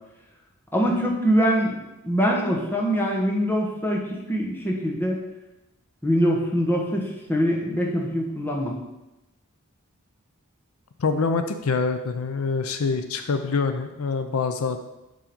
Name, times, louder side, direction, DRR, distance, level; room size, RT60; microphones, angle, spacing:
voice 1, 0.7-1.8 2.0-5.2 6.0-8.7, equal, 10° left, -1 dB, 1.1 m, -23 dB
voice 2, 11.0-14.8, left 4 dB, 80° left, 8 dB, 0.6 m, -25 dB
7.3 x 3.7 x 5.3 m, 0.97 s
head